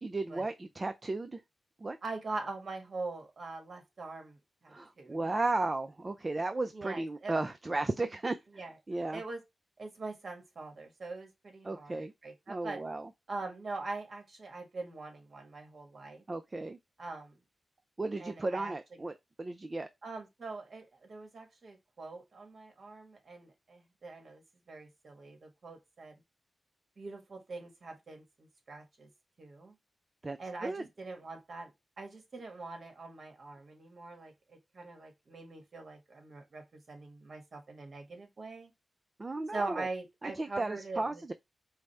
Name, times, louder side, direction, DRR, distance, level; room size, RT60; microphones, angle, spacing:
voice 1, 0.0-1.4 1.8-2.0 4.7-9.2 11.6-12.1 12.5-13.1 16.3-16.8 18.0-19.9 30.2-30.8 39.2-39.9 40.2-41.3, right 2 dB, 35° right, 0.4 m, -35 dB
voice 2, 2.0-5.2 6.7-7.4 8.5-8.7 9.1-9.4 9.8-12.8 13.3-16.2 17.0-17.4 18.2-18.7 20.0-26.2 27.0-29.1 29.4-29.7 30.4-38.7 39.5-41.2, right 3 dB, 60° right, 1.4 m, -43 dB
4.8 x 2.1 x 4.3 m
cardioid pair, 65°, 0 cm